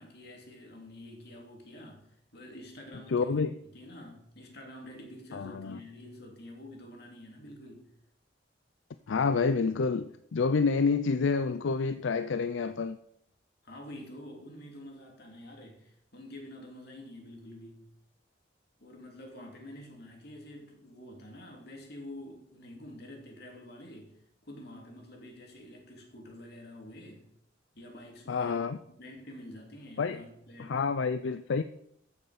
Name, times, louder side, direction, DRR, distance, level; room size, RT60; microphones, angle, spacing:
voice 1, 0.0-3.4 3.7-7.9 13.6-17.9 18.8-24.1 24.4-27.3 27.7-28.7 29.0-30.9, left 1 dB, 60° left, 3.0 m, -48 dB
voice 2, 3.1-3.5 5.3-5.8 9.1-13.0 28.3-28.8 30.0-30.2 30.6-31.6, left 4 dB, 85° left, 0.5 m, -28 dB
14.0 x 6.8 x 5.0 m
head